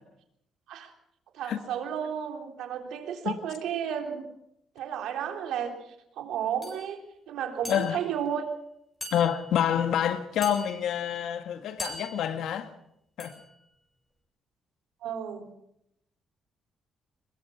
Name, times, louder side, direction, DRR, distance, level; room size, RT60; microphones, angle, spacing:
voice 1, 1.3-4.2 4.8-5.8 6.2-7.0 7.3-8.5 15.0-15.5, right 8 dB, 85° right, 3.5 m, -32 dB
sound 1, 6.6-6.8 7.6-8.2 9.0-9.7 10.4-11.0 11.8-12.4 13.2-13.6, equal, 20° left, 7.2 m, -41 dB
voice 2, 7.7-8.0 9.1-12.7 13.2-13.3, left 9 dB, 80° left, 1.9 m, -27 dB
22.0 x 21.5 x 6.0 m
cardioid pair, 90°, 0 cm